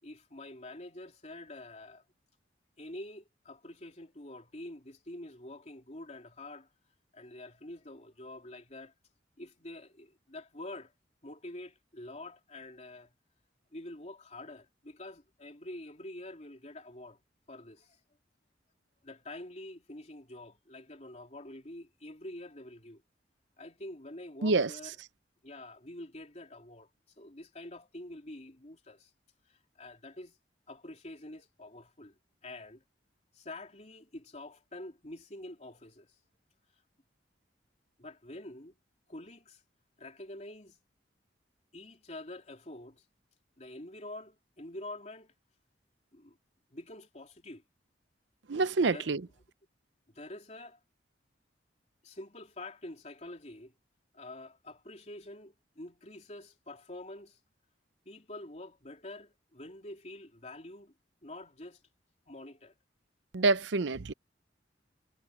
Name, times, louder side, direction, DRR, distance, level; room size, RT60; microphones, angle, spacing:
voice 1, 0.0-2.0 2.8-6.7 7.1-8.9 9.4-10.9 11.2-13.1 13.7-17.2 17.5-18.0 19.0-23.0 23.6-24.9 25.4-26.9 27.2-29.1 29.5-30.4 30.7-32.8 33.3-36.1 38.0-38.8 39.1-39.6 40.0-40.8 41.7-43.0 43.6-45.3 46.1-46.4 46.7-47.6 48.9-49.1 50.1-50.8 52.0-53.7 54.1-57.4 58.0-60.9 61.2-61.8 62.3-62.7, left 1 dB, 40° left, 3.2 m, -46 dB
voice 2, 24.4-24.7 48.5-49.2 63.3-64.1, right 3 dB, 80° right, 0.7 m, -27 dB
head